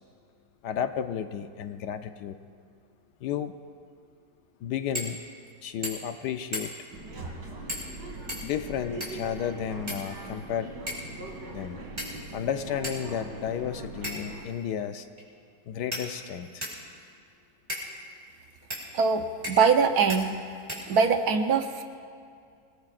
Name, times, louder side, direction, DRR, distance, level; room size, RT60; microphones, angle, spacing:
voice 1, 0.6-2.4 3.2-3.6 4.6-5.3 5.6-6.7 8.4-10.7 11.5-11.8 12.3-15.1 15.7-16.6, left 9 dB, 75° left, 9 dB, 1.2 m, -32 dB
sound 1, 4.9-5.2 5.5-5.6 5.8-6.2 6.5-6.9 7.7-7.9 8.3-9.3 9.9-10.4 10.9-11.1 12.0-12.4 12.8-13.0 14.0-14.4 15.2-15.3 15.9-16.8 17.7-17.9 18.7-18.8 19.4-19.8 20.1-20.2 20.7-21.2, equal, 25° right, 4.4 m, -36 dB
sound 2, 6.9-14.4, right 2 dB, 90° right, 2.9 m, -41 dB
voice 2, 18.9-20.3 20.9-21.8, right 5 dB, 60° right, 6 dB, 1.3 m, -23 dB
28.0 x 19.0 x 2.5 m, 2.3 s
omnidirectional pair, 1.9 m